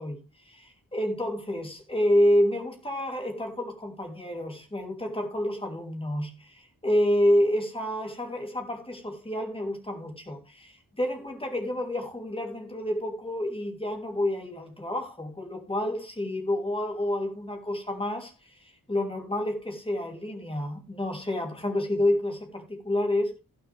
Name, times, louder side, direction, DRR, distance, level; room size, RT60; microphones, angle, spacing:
voice 1, 0.0-23.3, left 1 dB, 15° left, 2.9 m, -29 dB
16.0 x 6.6 x 3.3 m
wide cardioid pair, 130°, 35 cm